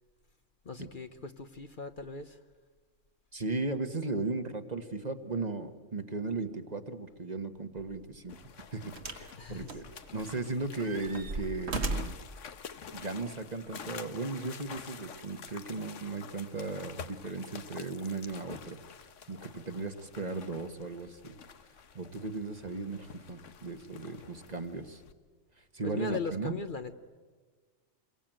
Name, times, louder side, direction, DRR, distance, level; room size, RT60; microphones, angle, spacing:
voice 1, 0.6-2.4 9.4-9.7 25.8-26.9, left 4 dB, 45° left, 9 dB, 1.1 m, -38 dB
voice 2, 3.3-8.4 8.7-9.9 10.1-12.2 12.9-18.8 19.3-21.4 21.9-25.0 25.6-26.5, right 3 dB, 35° right, 7 dB, 1.4 m, -36 dB
sound 1, 7.8-8.0 9.0-9.3 9.7-10.4 10.8-12.3 13.2-13.3, right 3 dB, 65° right, 1.9 m, -36 dB
sound 2, 8.3-25.1, left 7 dB, 85° left, 1.4 m, -49 dB
28.0 x 22.5 x 9.0 m, 1.4 s
omnidirectional pair, 1.2 m